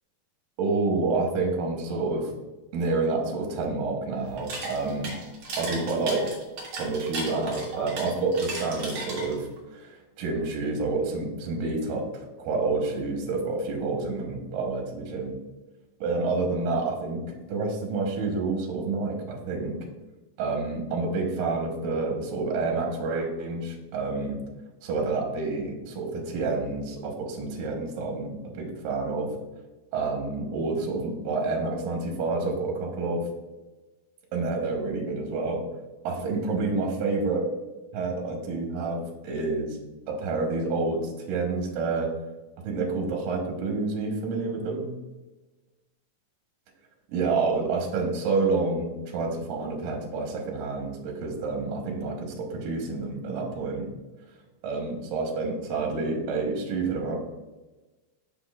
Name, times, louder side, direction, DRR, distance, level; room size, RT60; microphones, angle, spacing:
voice 1, 0.6-2.3 2.7-5.1 5.6-6.4 6.7-15.4 16.0-19.8 20.4-24.4 24.8-29.3 29.9-33.3 34.3-35.6 36.0-37.5 37.9-39.8 40.1-42.1 42.6-44.9 47.1-53.9 54.6-57.2, right 3 dB, 70° right, 0 dB, 2.5 m, -28 dB
sound 1, 4.3-9.6, right 2 dB, 45° right, 1.9 m, -35 dB
7.4 x 6.1 x 2.4 m, 1.2 s
omnidirectional pair, 4.2 m